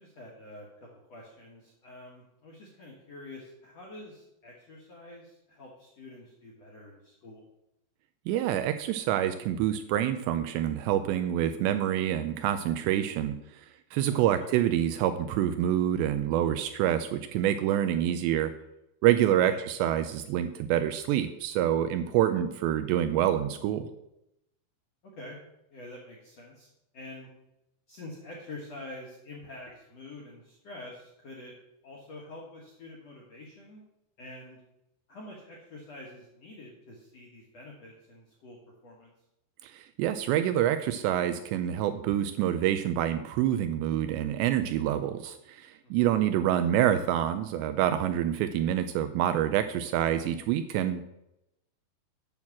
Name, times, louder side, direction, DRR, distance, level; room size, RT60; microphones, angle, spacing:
voice 1, 0.0-7.4 14.1-14.5 19.4-19.6 25.0-25.4 25.7-27.3 27.9-31.5 31.8-33.8 34.2-34.6 35.1-39.1 45.8-46.2, left 2 dB, 60° left, -3 dB, 1.7 m, -47 dB
voice 2, 8.3-13.6 13.9-18.5 19.0-23.9 39.6-51.1, right 11 dB, 85° right, 10 dB, 2.6 m, -27 dB
8.9 x 6.2 x 7.2 m, 0.85 s
omnidirectional pair, 5.4 m